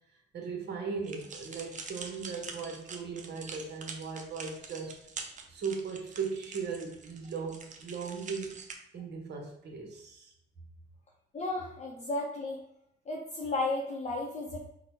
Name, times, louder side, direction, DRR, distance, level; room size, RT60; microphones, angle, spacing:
voice 1, 0.3-4.9 5.5-8.6 8.9-10.3, right 5 dB, 60° right, 2 dB, 1.1 m, -38 dB
sound 1, 1.0-8.7, right 4 dB, 40° right, 0.6 m, -45 dB
voice 2, 11.3-12.6 13.1-14.6, left 2 dB, 35° left, -1 dB, 0.7 m, -33 dB
3.8 x 2.2 x 4.5 m, 0.76 s
cardioid pair, 90°, 20 cm